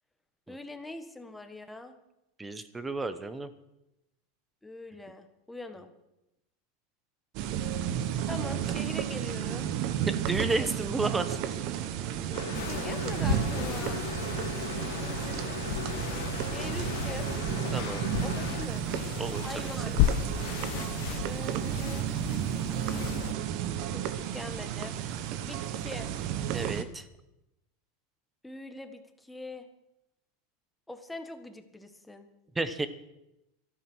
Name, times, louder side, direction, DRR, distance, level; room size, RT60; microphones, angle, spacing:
voice 1, 0.5-2.0 4.6-5.9 8.3-9.7 10.2-10.7 12.6-14.1 15.0-15.6 16.4-17.3 18.2-18.8 19.4-19.9 21.2-22.2 23.9-25.0 25.4-26.1 28.4-29.7 30.9-32.3, left 2 dB, 5° left, 7 dB, 1.4 m, -42 dB
voice 2, 2.4-3.5 10.1-11.4 17.7-18.1 19.2-20.0 20.3-20.4 26.5-27.1 32.5-32.9, right 3 dB, 10° right, 12 dB, 1.1 m, -32 dB
sound 1, 7.3-26.8, right 10 dB, 55° right, 1.1 m, -32 dB
sound 2, 12.3-18.7, left 9 dB, 80° left, 1.6 m, -39 dB
sound 3, 12.5-23.3, left 12 dB, 60° left, 0.9 m, -35 dB
13.5 x 12.0 x 6.3 m, 0.90 s
supercardioid pair, 130°, 0 cm